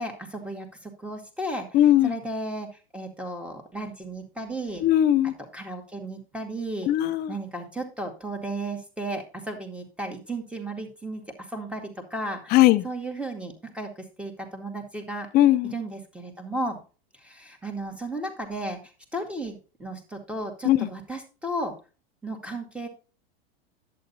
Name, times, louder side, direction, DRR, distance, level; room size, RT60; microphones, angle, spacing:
voice 1, 0.0-1.7 2.0-4.8 5.5-6.9 7.3-12.6 12.8-15.3 15.7-16.8 17.2-18.8 19.1-21.8 22.2-22.9, right 1 dB, 5° right, 2.1 m, -34 dB
voice 2, 1.7-2.1 4.8-5.3 6.9-7.3 12.5-12.8 15.3-15.7 20.6-20.9, left 13 dB, 35° left, 0.5 m, -19 dB
11.0 x 8.6 x 2.7 m
hypercardioid pair, 105°, 30 cm